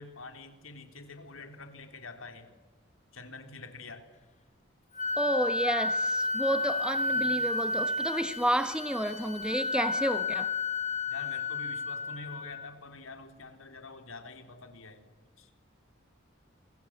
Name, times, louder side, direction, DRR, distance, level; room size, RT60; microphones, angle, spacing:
voice 1, 0.0-2.5 3.1-4.1 7.1-7.5 11.1-15.1 15.4-15.5, left 3 dB, 85° left, 3.8 m, -46 dB
Wind instrument woodwind instrument, 5.0-12.7, left 3 dB, 35° left, 1.4 m, -31 dB
voice 2, 5.2-10.5, right 1 dB, 5° right, 1.0 m, -31 dB
27.5 x 25.0 x 7.7 m
head